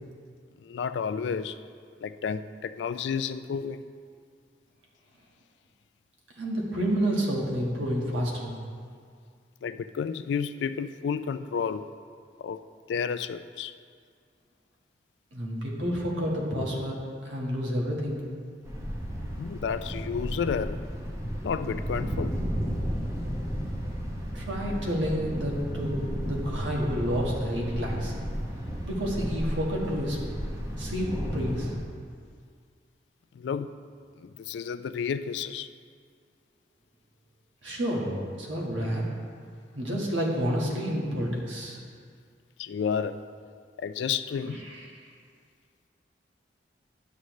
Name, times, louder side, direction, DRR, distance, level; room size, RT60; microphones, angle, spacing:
voice 1, 0.6-1.6 2.0-3.8 9.6-11.9 12.4-12.6 12.9-13.7 19.4-20.8 21.4-22.4 33.4-33.7 34.2-35.7 42.6-43.2 43.8-44.6, left 6 dB, 75° left, 12 dB, 0.3 m, -31 dB
voice 2, 6.4-8.6 15.3-16.9 17.2-18.2 24.3-28.1 28.8-30.2 30.8-31.7 37.6-39.0 39.7-41.8, equal, 85° right, -3 dB, 1.5 m, -29 dB
Thunder, 18.6-31.8, equal, 15° right, 0.9 m, -33 dB
11.0 x 6.4 x 3.1 m, 2.1 s
head